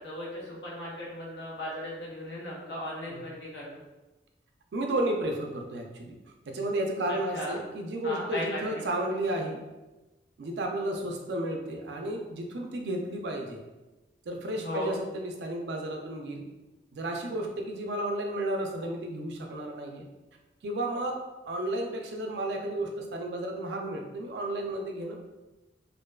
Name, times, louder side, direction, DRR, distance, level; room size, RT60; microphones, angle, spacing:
voice 1, 0.0-3.8 7.1-7.6 8.0-8.9 14.6-14.9, left 1 dB, 75° left, -6 dB, 0.9 m, -37 dB
voice 2, 4.7-6.2 6.5-9.6 10.4-13.6 14.3-16.4 16.9-20.1 20.6-25.3, right 1 dB, 70° right, 2 dB, 0.4 m, -32 dB
2.5 x 2.2 x 2.2 m, 1.1 s
head